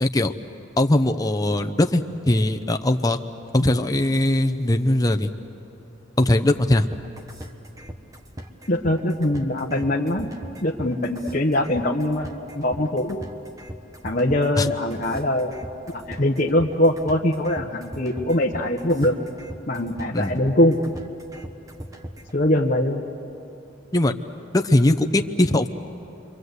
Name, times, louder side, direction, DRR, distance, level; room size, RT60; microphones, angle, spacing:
voice 1, 0.0-0.3 0.8-3.2 3.6-5.3 6.2-6.9 14.6-14.7 20.1-20.3 23.9-24.1 24.5-25.7, left 1 dB, 20° left, 5 dB, 0.8 m, -20 dB
sound 1, 6.9-22.3, equal, 20° right, 1.3 m, -39 dB
voice 2, 8.7-10.3 10.6-13.2 14.0-15.5 15.9-19.1 19.7-20.8 22.3-23.0, left 1 dB, 45° left, -1 dB, 1.1 m, -22 dB
29.5 x 23.5 x 8.1 m, 2.8 s
head